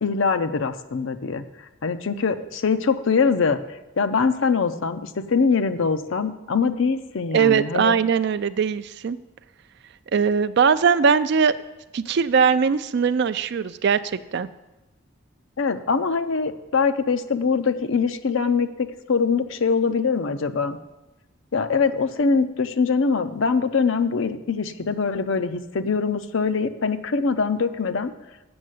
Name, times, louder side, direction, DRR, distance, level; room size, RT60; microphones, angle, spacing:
voice 1, 0.0-1.4 1.8-3.6 4.0-8.0 15.6-20.8 21.5-28.1, left 5 dB, 65° left, 10 dB, 0.5 m, -23 dB
voice 2, 7.3-9.2 10.1-11.5 11.9-14.5, right 6 dB, 50° right, 13 dB, 0.4 m, -20 dB
7.9 x 6.5 x 7.7 m, 1.0 s
head